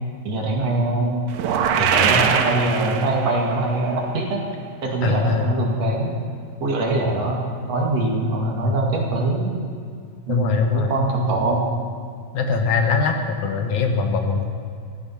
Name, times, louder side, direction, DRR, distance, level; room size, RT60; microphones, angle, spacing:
voice 1, 0.2-1.2 1.8-4.4 4.8-6.1 6.6-7.4 7.6-9.5 10.3-11.6, right 2 dB, 60° right, -1 dB, 3.2 m, -22 dB
sound 1, 1.3-3.5, right 7 dB, 90° right, 2.3 m, -21 dB
voice 2, 5.0-5.5 8.6-8.7 10.3-10.9 12.3-14.4, left 5 dB, 75° left, 4 dB, 2.6 m, -22 dB
15.0 x 14.0 x 5.7 m, 2.3 s
omnidirectional pair, 3.4 m